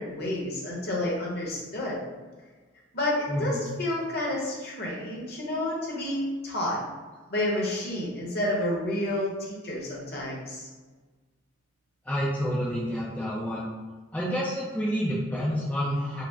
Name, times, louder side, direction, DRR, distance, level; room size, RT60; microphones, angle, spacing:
voice 1, 0.0-2.0 2.9-6.8 7.3-10.7, left 1 dB, 50° left, -4 dB, 1.0 m, -30 dB
voice 2, 3.3-3.7 12.1-13.7 14.1-16.2, equal, 5° left, -7 dB, 0.4 m, -29 dB
4.8 x 2.1 x 3.5 m, 1.3 s
head